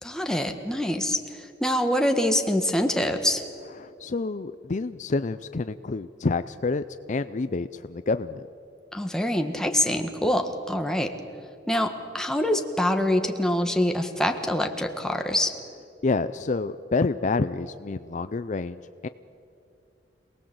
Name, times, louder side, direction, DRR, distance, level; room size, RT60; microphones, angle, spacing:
voice 1, 0.0-3.5 8.9-11.1 11.7-15.5, left 1 dB, 5° left, 5 dB, 1.4 m, -25 dB
voice 2, 3.8-8.5 16.0-19.1, left 3 dB, 40° left, 12 dB, 0.5 m, -28 dB
27.0 x 19.0 x 7.8 m, 2.7 s
head